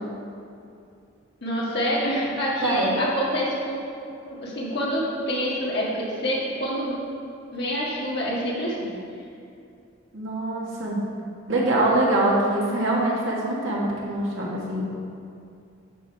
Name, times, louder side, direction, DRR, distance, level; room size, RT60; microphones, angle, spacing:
voice 1, 1.4-3.8 4.2-6.9 7.5-8.9, equal, 50° left, -6 dB, 1.7 m, -26 dB
voice 2, 2.6-3.0 10.1-11.0 11.5-14.9, right 1 dB, 65° right, -4 dB, 1.7 m, -24 dB
10.0 x 5.1 x 4.7 m, 2.5 s
head